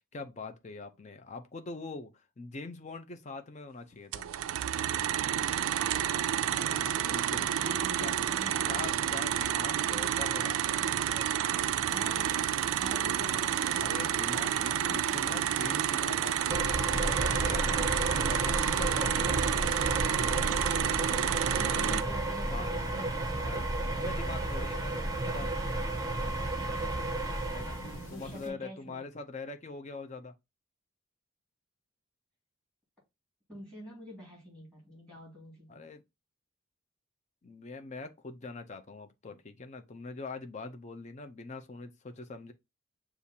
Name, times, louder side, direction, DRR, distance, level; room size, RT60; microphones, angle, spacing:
voice 1, 0.0-4.3 6.5-7.5 8.0-8.2 8.7-11.3 13.8-16.7 17.0-19.4 21.6-22.0 22.4-23.2 23.4-25.5 27.5-27.8 28.1-30.3 35.7-36.0 37.4-42.5, left 3 dB, 35° left, 0.5 m, -43 dB
sound 1, 4.1-22.0, right 10 dB, 85° right, 0.3 m, -30 dB
voice 2, 5.9-9.1 11.9-14.1 14.4-15.4 20.6-23.2 26.6-27.3 28.1-29.0 33.5-35.9, left 1 dB, 5° left, 2.1 m, -48 dB
sound 2, 11.8-28.5, left 1 dB, 65° left, 1.5 m, -53 dB
sound 3, 16.5-28.1, right 2 dB, 15° right, 0.6 m, -32 dB
6.8 x 2.4 x 2.7 m
head